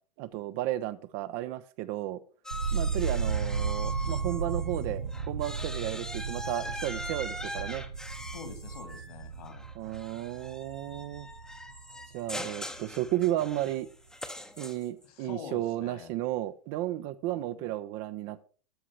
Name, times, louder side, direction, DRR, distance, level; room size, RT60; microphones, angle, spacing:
voice 1, 0.2-2.2 2.7-7.8 9.8-11.3 12.1-13.9 14.6-18.5, right 14 dB, 40° right, 0.8 m, -33 dB
sound 1, 2.4-4.8 5.1-15.0, left 1 dB, 5° left, 1.0 m, -42 dB
sound 2, 2.5-12.5 12.8-13.5, right 5 dB, 85° right, 0.8 m, -34 dB
voice 2, 8.3-9.6 10.9-11.2 15.0-16.1 17.1-17.7, left 7 dB, 60° left, 2.6 m, -47 dB
13.0 x 5.0 x 5.9 m
hypercardioid pair, 105°, 21 cm